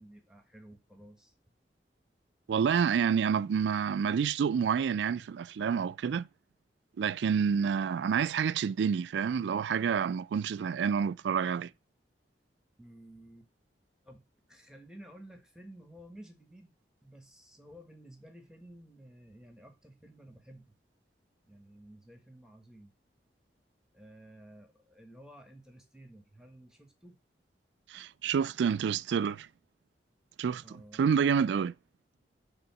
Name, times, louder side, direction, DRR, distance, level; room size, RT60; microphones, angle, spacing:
voice 1, 0.0-1.3 12.8-13.5 14.0-16.7 17.0-20.8 21.5-22.9 23.9-27.2 30.6-31.3, right 1 dB, 5° right, 1.3 m, -53 dB
voice 2, 2.5-6.3 7.0-11.7 27.9-29.5 30.4-30.6 31.0-31.7, right 7 dB, 80° right, 0.3 m, -28 dB
6.9 x 3.7 x 5.7 m
head